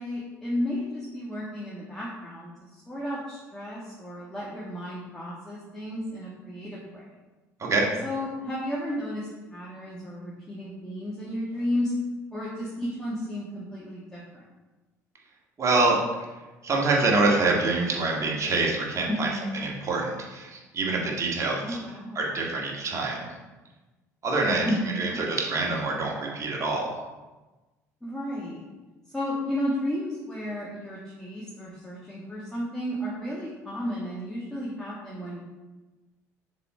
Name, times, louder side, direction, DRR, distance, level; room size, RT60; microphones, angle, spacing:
voice 1, 0.0-7.1 8.0-12.0 12.3-14.4 19.1-19.6 21.6-22.3 24.6-25.2 28.0-28.6 29.1-35.4, equal, 5° left, -7 dB, 1.7 m, -33 dB
voice 2, 15.6-16.0 16.6-19.3 19.6-21.8 22.2-23.3 24.2-24.7 25.0-26.9, right 3 dB, 35° right, -2 dB, 1.8 m, -25 dB
6.7 x 4.3 x 4.4 m, 1.2 s
figure-of-eight pair, 55°, 9 cm